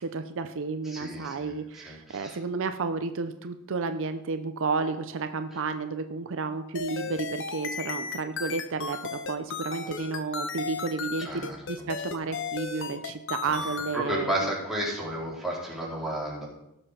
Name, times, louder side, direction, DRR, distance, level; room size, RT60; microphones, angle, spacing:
voice 1, 0.0-14.5, right 4 dB, 60° right, 9 dB, 0.6 m, -32 dB
voice 2, 0.8-2.4 11.2-11.9 13.4-13.5 13.9-16.4, right 1 dB, ahead, -6 dB, 4.2 m, -33 dB
sound 1, 6.8-14.0, left 5 dB, 60° left, 1.0 m, -35 dB
18.0 x 7.0 x 4.3 m, 0.86 s
head